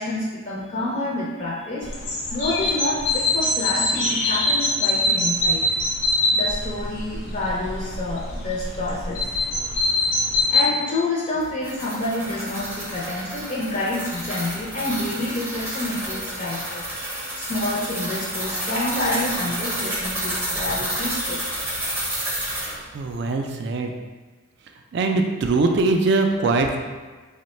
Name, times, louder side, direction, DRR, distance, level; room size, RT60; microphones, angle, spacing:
voice 1, 0.0-5.6 6.3-9.3 10.3-16.8 17.3-21.4, left 2 dB, 35° left, -6 dB, 0.5 m, -28 dB
sound 1, 1.8-10.6, left 2 dB, 80° left, 1.0 m, -23 dB
sound 2, 11.4-22.8, right 1 dB, 10° right, 0.6 m, -30 dB
voice 2, 22.9-24.0 24.9-26.8, right 3 dB, 55° right, 4 dB, 0.3 m, -21 dB
3.1 x 2.1 x 4.1 m, 1.3 s
head